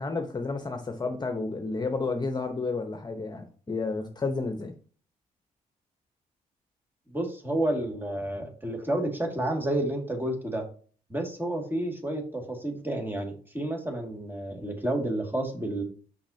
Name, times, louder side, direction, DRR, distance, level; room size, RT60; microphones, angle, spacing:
voice 1, 0.0-4.7, left 3 dB, 30° left, 5 dB, 0.9 m, -31 dB
voice 2, 7.1-10.6 11.1-15.8, right 1 dB, 15° right, 2 dB, 2.2 m, -30 dB
6.4 x 5.8 x 2.8 m, 0.41 s
cardioid pair, 70°, 15 cm